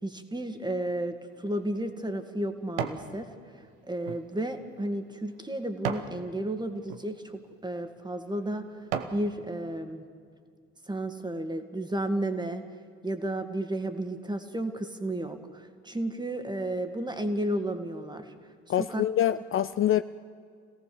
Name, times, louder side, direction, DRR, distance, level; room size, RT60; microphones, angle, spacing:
voice 1, 0.0-3.3 3.9-8.7 9.1-10.1 10.9-12.6 13.0-18.3 18.8-19.0, right 1 dB, 10° right, 7 dB, 2.3 m, -32 dB
sound 1, 1.3-3.1 3.6-6.2 6.8-7.0 7.7-7.9 8.4-9.3 9.7-9.8, right 7 dB, 80° right, 1.3 m, -37 dB
voice 2, 18.7-20.0, left 11 dB, 35° left, 13 dB, 0.6 m, -25 dB
27.0 x 17.5 x 7.1 m, 2.1 s
hypercardioid pair, 55°, 35 cm